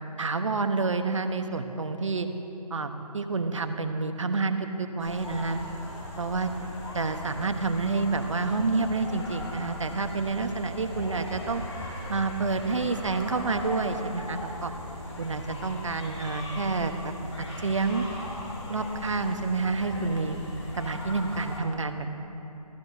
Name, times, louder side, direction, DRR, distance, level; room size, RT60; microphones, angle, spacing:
voice 1, 0.2-2.3 2.7-5.6 6.2-6.5 6.9-11.6 12.1-14.7 15.2-17.1 17.6-18.1 18.7-20.4 20.8-22.1, right 3 dB, 50° right, 7 dB, 1.1 m, -28 dB
sound 1, 5.0-21.6, left 1 dB, 50° left, 4.0 m, -38 dB
27.5 x 15.0 x 2.8 m, 3.0 s
figure-of-eight pair, 150°, 20 cm